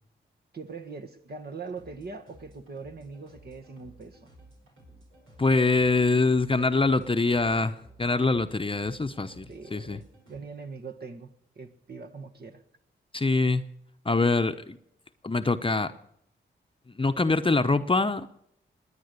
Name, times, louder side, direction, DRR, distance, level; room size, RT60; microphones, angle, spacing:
voice 1, 0.5-4.3 9.5-11.3 11.5-12.6, right 4 dB, 55° right, 1.6 m, -41 dB
sound 1, 1.6-10.4, right 1 dB, 85° right, 5.1 m, -55 dB
voice 2, 5.4-9.5 9.7-10.0 13.1-13.6 14.0-14.8 15.2-15.9 17.0-18.3, left 3 dB, 25° left, 0.9 m, -24 dB
20.0 x 9.8 x 6.7 m
cardioid pair, 50°, 20 cm